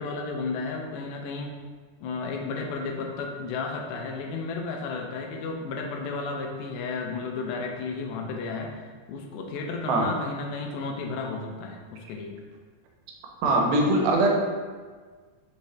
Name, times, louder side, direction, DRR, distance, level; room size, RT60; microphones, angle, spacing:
voice 1, 0.0-1.6 2.0-12.3, left 4 dB, 85° left, 2 dB, 2.4 m, -33 dB
voice 2, 13.4-14.3, right 2 dB, 85° right, 0 dB, 2.5 m, -21 dB
6.1 x 2.7 x 3.2 m, 1.5 s
omnidirectional pair, 4.2 m